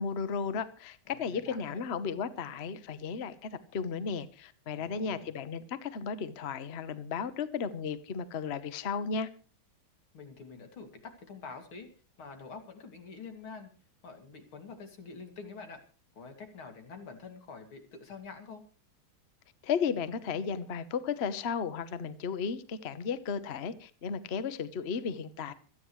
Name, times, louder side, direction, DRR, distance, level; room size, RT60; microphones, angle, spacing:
voice 1, 0.0-9.3 19.6-25.5, left 6 dB, 40° left, 13 dB, 1.0 m, -34 dB
voice 2, 1.1-1.8 4.7-5.3 10.1-11.9 12.2-13.7 14.0-15.8 16.1-18.6, left 4 dB, 90° left, 5 dB, 3.4 m, -47 dB
26.5 x 9.8 x 3.2 m, 0.38 s
omnidirectional pair, 2.2 m